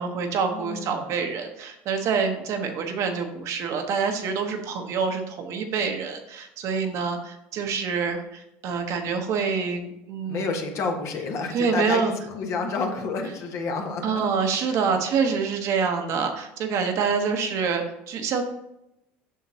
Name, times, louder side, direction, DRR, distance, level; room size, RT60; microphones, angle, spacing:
voice 1, 0.0-10.5 11.5-12.1 14.0-18.4, right 5 dB, 60° right, 4 dB, 1.1 m, -26 dB
voice 2, 0.5-1.2 10.3-14.3 14.7-14.9, left 4 dB, 55° left, 3 dB, 1.4 m, -30 dB
7.2 x 5.8 x 2.9 m, 0.86 s
supercardioid pair, 85°, 6 cm